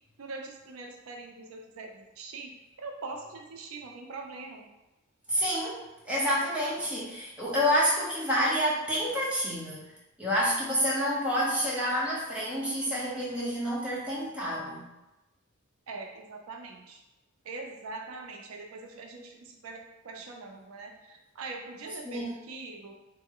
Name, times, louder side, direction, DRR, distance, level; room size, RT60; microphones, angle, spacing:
voice 1, 0.2-2.5 2.8-4.6 15.9-17.0 17.4-22.9, right 3 dB, 85° right, 2 dB, 0.5 m, -42 dB
voice 2, 5.3-9.9 10.2-14.9 22.0-22.3, equal, 5° right, -7 dB, 0.8 m, -28 dB
3.2 x 2.1 x 3.6 m, 0.97 s
head